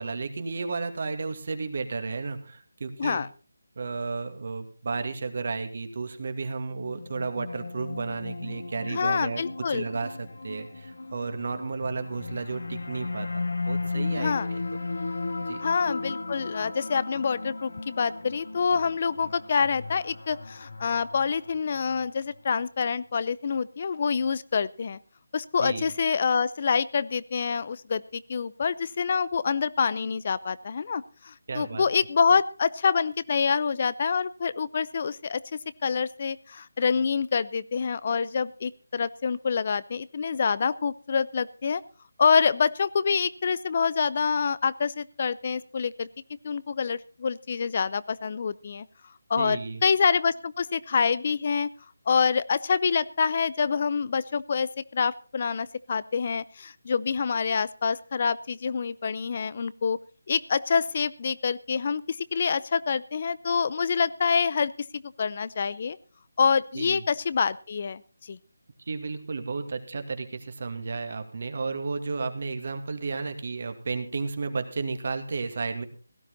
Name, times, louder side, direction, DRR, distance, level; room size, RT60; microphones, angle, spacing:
voice 1, 0.0-3.2 3.8-14.6 15.4-15.6 25.6-25.9 31.5-31.8 49.4-49.8 66.7-67.0 68.9-75.9, right 4 dB, 50° right, 8 dB, 2.3 m, -33 dB
sound 1, 6.7-22.0, left 3 dB, 75° left, 2.1 m, -35 dB
voice 2, 8.9-9.9 14.2-14.5 15.6-25.0 25.3-41.8 42.2-46.1 46.4-48.8 49.3-51.7 52.1-60.0 60.3-66.0 66.4-68.4, left 5 dB, 40° left, 18 dB, 0.6 m, -26 dB
17.0 x 12.0 x 4.1 m, 0.36 s
figure-of-eight pair, 160°, 0 cm